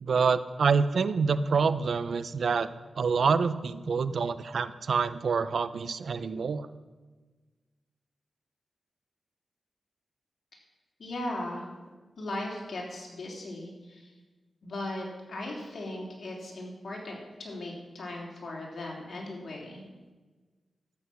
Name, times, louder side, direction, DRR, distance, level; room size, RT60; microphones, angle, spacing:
voice 1, 0.0-2.7 3.0-6.7, right 5 dB, 75° right, 13 dB, 0.6 m, -27 dB
voice 2, 11.0-11.7 12.2-14.1 14.6-19.8, left 1 dB, 65° left, -1 dB, 3.5 m, -38 dB
13.0 x 8.6 x 6.0 m, 1.3 s
cardioid pair, 70°, 0 cm